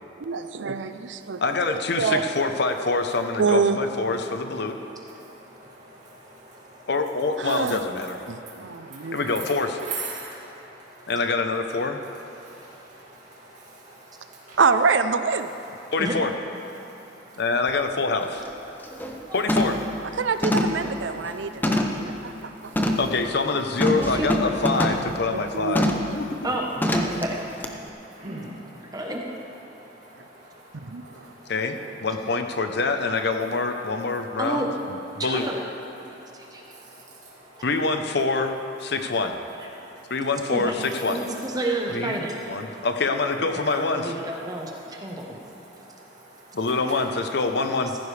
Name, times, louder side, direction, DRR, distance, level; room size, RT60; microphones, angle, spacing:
voice 1, 0.2-1.4 2.0-2.2 3.4-3.8 7.4-7.8 8.3-9.2 14.6-15.5 20.3-22.7 25.3-26.2 30.8-31.3, right 5 dB, 85° right, 10 dB, 0.6 m, -25 dB
voice 2, 1.4-4.8 6.9-8.2 9.1-9.8 11.1-12.0 15.9-16.3 17.4-18.4 19.3-19.8 23.0-26.5 31.5-35.5 37.6-39.3 40.1-41.2 41.9-42.2 42.5-44.0 46.5-47.9, left 3 dB, 65° left, 6 dB, 0.8 m, -25 dB
voice 3, 5.2-6.8 8.3-9.2 9.9-11.1 12.4-14.6 16.8-17.4 18.7-19.3 21.4-22.3 22.6-22.7 27.9-28.9 29.7-30.7 31.0-31.5 36.5-37.6 39.8-40.0 45.1-45.2 45.7-46.6, right 3 dB, 45° right, -6 dB, 2.2 m, -43 dB
sound 1, 17.7-17.8 18.2-18.5 18.8-19.2 19.5-19.9 20.4-22.1 22.7-23.1 23.8-25.1 25.7-26.1 26.8-27.2 27.6-27.7, left 1 dB, 10° left, 0.8 m, -24 dB
voice 4, 23.8-24.3 24.7-25.1 26.4-27.4 28.8-29.2 34.4-34.7 35.2-35.5 36.3-36.6 39.6-39.7 40.5-40.7 41.1-42.4 43.4-45.4, right 1 dB, 20° right, -1 dB, 1.0 m, -30 dB
15.5 x 14.5 x 3.4 m, 3.0 s
head